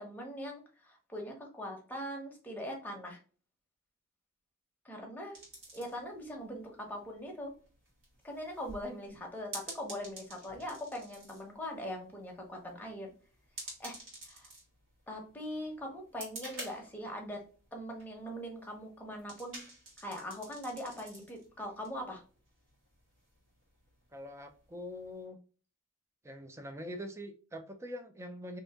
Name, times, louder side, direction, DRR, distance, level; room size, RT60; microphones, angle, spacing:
voice 1, 0.0-3.2 4.8-5.4 5.7-7.5 8.2-13.1 13.8-14.0 14.2-14.5 15.1-17.4 17.7-19.6 20.0-22.2, equal, 10° left, 0 dB, 0.7 m, -41 dB
sound 1, 5.3-25.2, right 2 dB, 65° right, 1.5 m, -51 dB
voice 2, 24.1-25.4 26.2-28.6, left 1 dB, 15° right, 7 dB, 0.4 m, -44 dB
2.7 x 2.6 x 3.4 m, 0.39 s
head